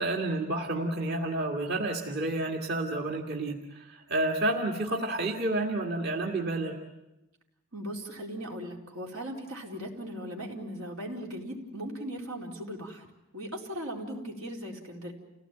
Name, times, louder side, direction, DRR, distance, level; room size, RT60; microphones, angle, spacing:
voice 1, 0.0-6.8, right 2 dB, 50° right, 1 dB, 2.1 m, -30 dB
voice 2, 7.7-13.1 13.3-15.1, equal, 85° right, 0 dB, 4.4 m, -38 dB
29.0 x 17.5 x 9.1 m, 0.97 s
head